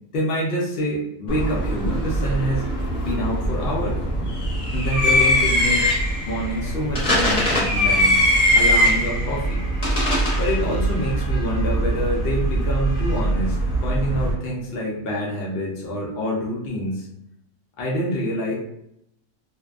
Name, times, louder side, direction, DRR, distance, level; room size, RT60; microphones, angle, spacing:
voice 1, 0.1-2.6 3.0-4.0 4.7-5.8 6.3-8.3 8.5-9.6 10.4-13.6 13.8-17.1 17.8-18.5, equal, 75° left, -3 dB, 0.5 m, -26 dB
sound 1, 1.3-14.3, equal, 35° left, 0.7 m, -21 dB
2.6 x 2.2 x 2.4 m, 0.78 s
omnidirectional pair, 1.6 m